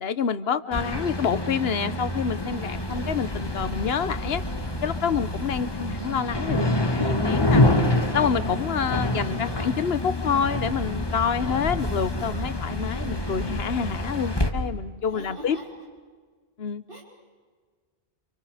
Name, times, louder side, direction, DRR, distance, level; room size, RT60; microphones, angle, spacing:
voice 1, 0.0-4.4 4.8-7.6 8.1-15.6 16.6-16.8, left 7 dB, 75° left, 14 dB, 1.2 m, -27 dB
sound 1, 0.7-14.5, left 1 dB, 25° left, 1.7 m, -27 dB
voice 2, 9.1-9.7 15.0-15.7 16.9-17.0, right 2 dB, 60° right, -3 dB, 4.5 m, -42 dB
30.0 x 29.0 x 5.0 m, 1.5 s
omnidirectional pair, 1.0 m